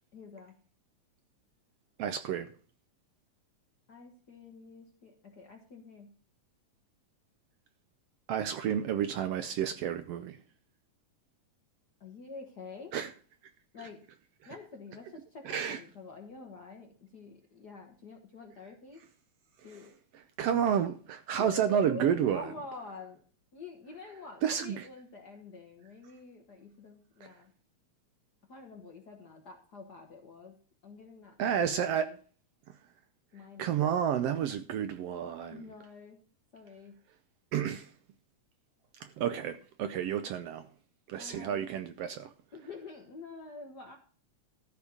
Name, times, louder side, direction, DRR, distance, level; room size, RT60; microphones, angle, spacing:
voice 1, 0.1-0.5 3.9-6.1 12.0-12.9 13.7-14.0 14.5-19.0 19.6-19.9 20.5-20.8 21.3-23.2 23.5-27.5 28.5-30.5 30.8-32.2 33.3-34.4 35.5-36.2 36.5-36.9 41.2-41.7 42.5-44.0, left 3 dB, 50° left, 1.3 m, -47 dB
voice 2, 2.0-2.5 8.3-10.4 12.9-13.1 15.4-15.8 20.4-22.5 24.4-24.8 31.4-32.1 33.6-35.7 37.5-37.9 39.2-40.7 41.1-42.3, right 9 dB, 75° right, 1.5 m, -30 dB
13.5 x 4.5 x 7.0 m
omnidirectional pair, 3.3 m